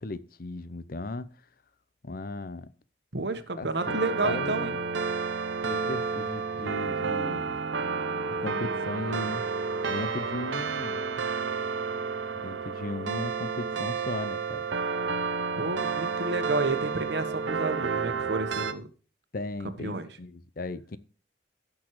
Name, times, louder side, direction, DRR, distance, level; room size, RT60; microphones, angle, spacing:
voice 1, 0.0-1.3 2.0-2.7 3.6-4.8 5.6-7.6 8.4-9.5 9.9-11.0 12.3-14.7 19.3-21.0, left 2 dB, 50° left, 0.7 m, -36 dB
voice 2, 3.1-4.7 15.6-18.9 19.8-20.1, right 3 dB, 65° right, 1.2 m, -31 dB
sound 1, 3.8-18.7, right 5 dB, 85° right, 0.8 m, -31 dB
17.0 x 6.2 x 3.1 m
head